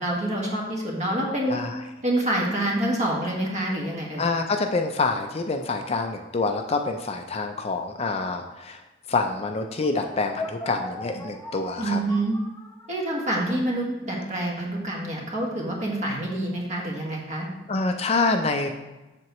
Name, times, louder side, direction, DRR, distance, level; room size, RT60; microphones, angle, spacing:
voice 1, 0.0-1.6 2.0-4.2 11.8-12.3 12.9-17.5, right 1 dB, 40° right, -2 dB, 1.6 m, -27 dB
voice 2, 4.2-8.8 9.1-12.0 17.7-18.7, left 3 dB, 35° left, 5 dB, 0.5 m, -26 dB
sound 1, 9.8-13.3, left 2 dB, 15° left, 1.2 m, -39 dB
7.6 x 6.8 x 3.1 m, 1.1 s
head